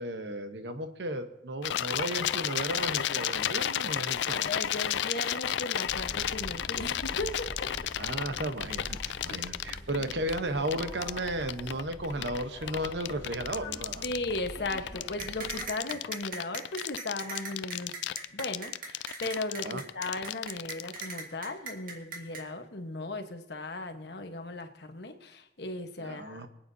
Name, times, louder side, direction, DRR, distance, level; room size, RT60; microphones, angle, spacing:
voice 1, 0.0-4.5 8.0-14.1 15.9-16.0 19.6-19.8 26.0-26.5, right 1 dB, 75° right, 8 dB, 1.1 m, -34 dB
sound 1, 1.6-21.0, left 11 dB, 90° left, 0.4 m, -32 dB
voice 2, 4.4-7.7 9.3-9.4 14.0-18.0 18.3-26.5, left 2 dB, 65° left, 6 dB, 1.3 m, -37 dB
sound 2, 5.8-15.7, left 1 dB, 25° left, 3.6 m, -44 dB
sound 3, 15.2-22.4, right 3 dB, 55° right, 2.1 m, -39 dB
25.0 x 9.0 x 2.8 m, 0.91 s
head